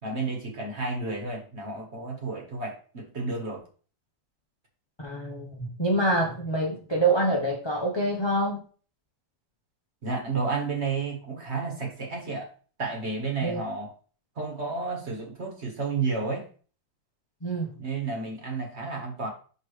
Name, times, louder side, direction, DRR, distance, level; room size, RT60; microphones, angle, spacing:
voice 1, 0.0-3.6 10.0-12.5 12.8-13.9 14.4-16.4 17.8-19.3, right 4 dB, 40° right, 1 dB, 1.5 m, -31 dB
voice 2, 5.0-8.6 13.4-13.6 17.4-17.7, right 2 dB, 25° left, -1 dB, 0.6 m, -26 dB
5.4 x 5.3 x 3.2 m, 0.40 s
omnidirectional pair, 2.0 m